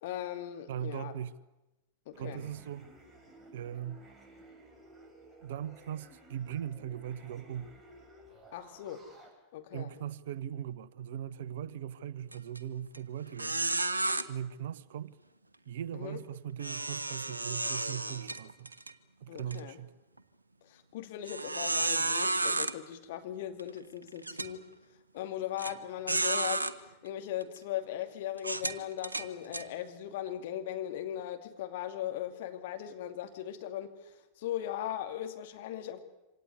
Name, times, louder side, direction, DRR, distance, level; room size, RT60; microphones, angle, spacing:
voice 1, 0.0-1.1 2.1-2.4 8.5-9.1 9.5-9.9 15.9-16.2 19.3-19.8 20.6-24.6 25.1-26.7 27.0-34.1 34.4-36.0, left 11 dB, 55° left, 2.5 m, -38 dB
voice 2, 0.7-1.4 2.2-2.9 3.5-4.0 5.4-7.7 9.7-13.6 14.3-15.2 15.7-18.7 19.2-19.9, right 9 dB, 55° right, 1.0 m, -39 dB
sound 1, 2.1-9.3, right 1 dB, 5° right, 7.1 m, -55 dB
sound 2, 12.3-12.6 12.9-13.0 13.4-14.2 16.6-18.9 19.4-19.5 20.2-20.3 21.3-22.7 23.6-23.7 24.2-24.5 25.6-25.7 26.1-26.7 27.4-27.6 28.4-29.6, right 2 dB, 80° right, 1.1 m, -32 dB
25.5 x 18.0 x 9.7 m
figure-of-eight pair, 90°, 0 cm